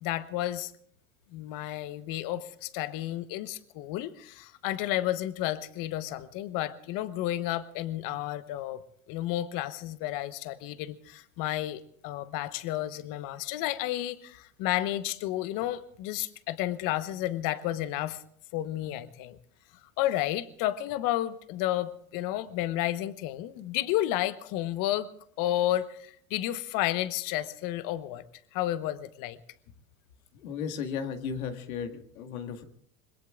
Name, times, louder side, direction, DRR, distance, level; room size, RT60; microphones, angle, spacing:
voice 1, 0.0-0.7 1.3-8.8 9.1-18.2 18.5-19.4 20.0-25.1 25.4-28.2 28.5-29.4, left 14 dB, 50° left, 13 dB, 1.2 m, -31 dB
voice 2, 30.3-32.6, left 7 dB, 85° left, 6 dB, 1.9 m, -35 dB
26.5 x 21.0 x 2.5 m, 0.64 s
hypercardioid pair, 105°, 42 cm